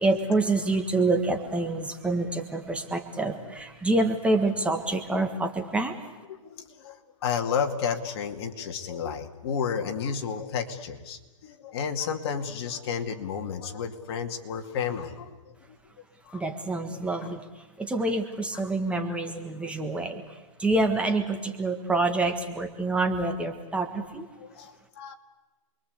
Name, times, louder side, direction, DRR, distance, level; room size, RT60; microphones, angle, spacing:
voice 1, 0.0-5.9 16.3-17.4 17.8-20.2 20.6-24.3, right 2 dB, 5° right, 5 dB, 1.7 m, -27 dB
voice 2, 6.3-15.3 15.7-15.8 16.3-16.4 17.2-17.3 18.5-18.6 24.4-25.1, left 7 dB, 50° left, 5 dB, 2.6 m, -32 dB
29.0 x 22.5 x 8.3 m, 1.2 s
hypercardioid pair, 150°, 17 cm